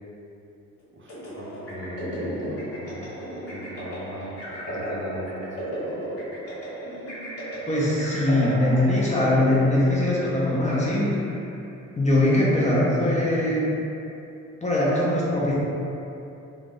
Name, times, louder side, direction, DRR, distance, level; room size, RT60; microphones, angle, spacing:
voice 1, 0.9-3.1 3.5-5.6, right 1 dB, 40° right, -5 dB, 0.6 m, -38 dB
sound 1, 1.1-11.5, equal, 50° left, 1.1 m, -34 dB
voice 2, 7.7-11.1 12.0-13.7 14.6-15.5, left 1 dB, 25° left, -7 dB, 0.6 m, -21 dB
2.3 x 2.0 x 3.7 m, 2.8 s
cardioid pair, 90°, 30 cm